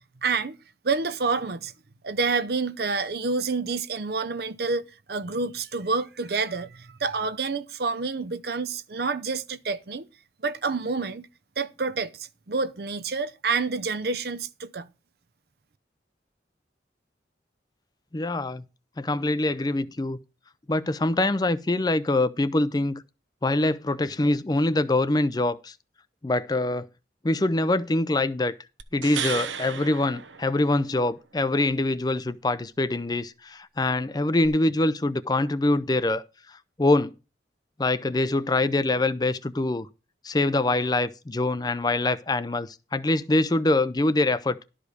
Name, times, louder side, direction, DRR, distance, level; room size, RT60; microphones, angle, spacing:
voice 1, 0.2-0.6 0.8-1.7 2.0-10.0 10.4-11.3 11.6-14.9, right 4 dB, 55° right, 0.6 m, -28 dB
voice 2, 18.1-18.6 19.0-20.2 20.7-23.0 23.4-25.7 26.2-26.9 27.2-28.5 28.9-37.1 37.8-39.9 40.2-44.6, left 2 dB, 20° left, 0.5 m, -24 dB
sound 1, 28.8-31.1 34.4-34.5, right 8 dB, 85° right, 1.0 m, -34 dB
12.0 x 5.0 x 6.5 m
head